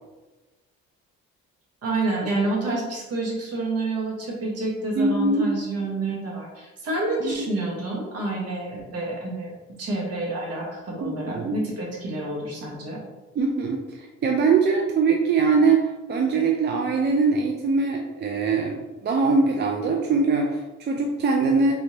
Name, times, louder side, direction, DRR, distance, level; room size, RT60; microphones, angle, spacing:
voice 1, 1.8-13.0, right 2 dB, 55° right, -2 dB, 1.1 m, -28 dB
voice 2, 5.0-5.5 7.2-7.5 11.0-11.6 13.4-21.7, right 4 dB, 35° right, 1 dB, 0.4 m, -22 dB
3.3 x 3.0 x 2.7 m, 1.2 s
cardioid pair, 90°, 30 cm